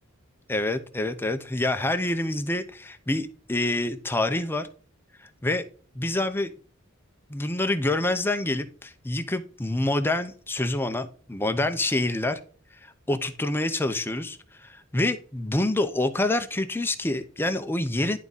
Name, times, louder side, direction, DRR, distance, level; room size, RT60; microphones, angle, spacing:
voice 1, 0.5-4.7 5.4-5.6 6.0-6.5 7.3-12.4 13.1-18.2, left 2 dB, 10° left, 8 dB, 0.6 m, -27 dB
10.5 x 3.6 x 4.0 m, 0.41 s
head